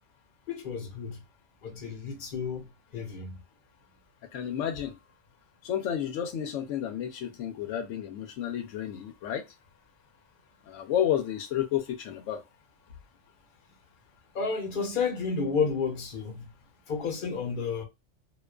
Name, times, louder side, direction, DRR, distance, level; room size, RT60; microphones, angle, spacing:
voice 1, 0.5-1.2 1.6-3.4 14.3-16.5 16.9-17.8, left 5 dB, 50° left, 0.9 m, -31 dB
voice 2, 4.3-5.0 5.6-9.4 10.7-12.4, left 10 dB, 90° left, 0.9 m, -31 dB
2.5 x 2.3 x 2.2 m
omnidirectional pair, 1.2 m